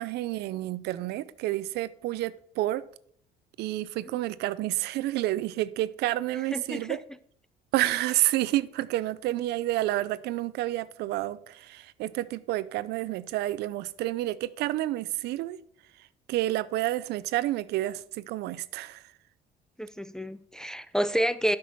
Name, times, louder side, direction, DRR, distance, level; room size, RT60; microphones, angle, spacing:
voice 1, 0.0-2.8 3.6-7.0 7.7-15.6 16.0-19.1, right 15 dB, 80° right, 0.5 m, -29 dB
voice 2, 6.5-7.0 19.8-21.6, equal, 5° left, 0.4 m, -29 dB
8.3 x 5.9 x 4.5 m
cardioid pair, 110°, 17 cm